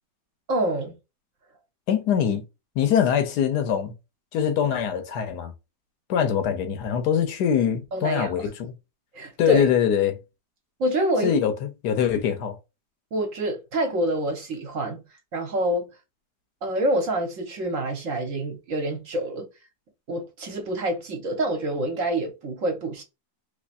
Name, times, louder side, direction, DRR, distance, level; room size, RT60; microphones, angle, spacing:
voice 1, 0.5-1.0 7.9-8.5 9.1-9.7 10.8-11.4 13.1-15.0 15.3-15.9 16.6-19.5 20.1-23.0, right 1 dB, 55° right, 1.1 m, -27 dB
voice 2, 1.9-2.4 2.8-3.9 4.3-5.5 6.1-8.5 9.4-10.2 11.2-12.6, left 8 dB, 75° left, 1.2 m, -23 dB
3.2 x 3.2 x 2.5 m
omnidirectional pair, 1.8 m